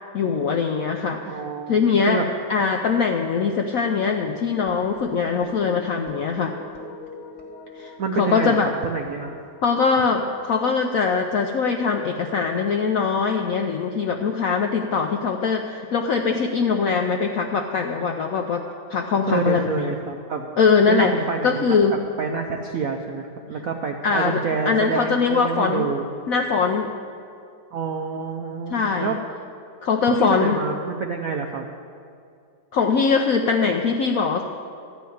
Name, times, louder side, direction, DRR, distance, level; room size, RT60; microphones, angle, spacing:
voice 1, 0.1-1.4 1.7-2.2 2.5-6.6 7.8-8.7 9.6-19.7 20.6-21.1 21.4-22.0 24.0-24.4 24.7-25.9 26.3-26.9 28.7-29.2 29.8-30.6 32.7-34.4, left 5 dB, 75° left, 3 dB, 0.8 m, -22 dB
voice 2, 1.3-2.2 2.7-2.8 8.0-9.4 19.2-20.6 20.9-21.7 22.2-26.0 27.7-29.2 30.2-31.7, right 5 dB, 70° right, 3 dB, 0.8 m, -27 dB
sound 1, 4.7-11.2, left 3 dB, 35° left, 1.9 m, -43 dB
13.5 x 5.6 x 9.2 m, 2.4 s
omnidirectional pair, 2.2 m